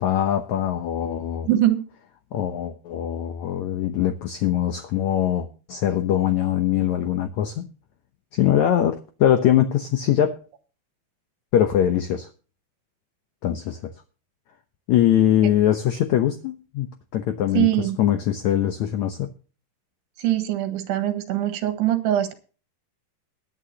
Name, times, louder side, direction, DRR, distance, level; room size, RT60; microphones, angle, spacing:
voice 1, 0.0-1.5 2.3-7.7 8.3-10.4 11.5-12.3 13.4-13.9 14.9-19.3, left 11 dB, 75° left, 1.7 m, -22 dB
voice 2, 1.5-1.8 17.6-18.0 20.2-22.3, right 13 dB, 90° right, 3.7 m, -22 dB
21.0 x 9.1 x 2.9 m
omnidirectional pair, 4.7 m